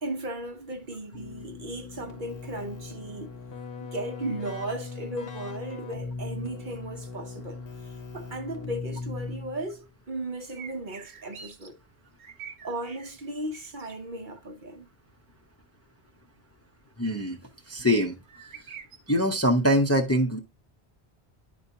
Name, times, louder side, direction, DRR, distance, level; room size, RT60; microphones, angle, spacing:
voice 1, 0.0-3.4 3.8-7.6 8.1-11.8 12.6-14.9, right 1 dB, 50° right, 0.9 m, -36 dB
Keyboard (musical), 1.1-9.8, left 4 dB, 65° left, 1.1 m, -39 dB
sound 1, 10.5-11.7 12.0-13.1 13.5-14.0 18.3-19.1, right 6 dB, 80° right, 1.3 m, -45 dB
voice 2, 17.0-17.4 17.7-18.2 19.1-20.4, equal, 15° left, 0.7 m, -23 dB
10.5 x 4.3 x 2.8 m
omnidirectional pair, 1.1 m